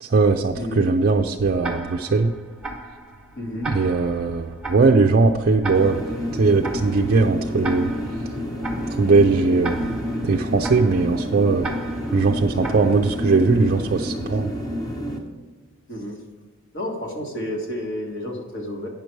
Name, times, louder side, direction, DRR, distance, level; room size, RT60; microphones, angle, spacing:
voice 1, 0.0-2.4 3.7-6.0 6.3-7.9 9.0-9.9 10.2-11.7 12.1-14.5, right 3 dB, 45° right, 2 dB, 0.4 m, -19 dB
voice 2, 0.6-0.9 3.4-3.8 4.2-4.3 15.9-16.2 16.7-18.9, left 1 dB, 55° left, 0 dB, 1.8 m, -31 dB
Tick-tock, 1.6-13.5, right 2 dB, 5° right, 1.1 m, -37 dB
sound 1, 5.7-15.2, equal, 15° left, 1.1 m, -29 dB
9.1 x 6.7 x 4.6 m, 1.4 s
head